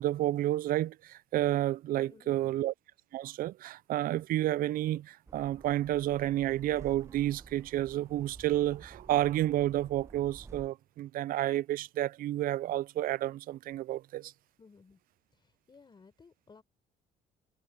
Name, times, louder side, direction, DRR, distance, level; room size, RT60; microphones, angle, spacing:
voice 1, 0.0-2.7 3.1-14.3, right 14 dB, 60° right, 0.4 m, -30 dB
voice 2, 2.0-2.6 14.6-15.0 15.3-16.6, left 4 dB, 25° left, 4.2 m, -58 dB
sound 1, 5.3-10.7, right 4 dB, 15° right, 0.6 m, -52 dB
cardioid pair, 110°, 17 cm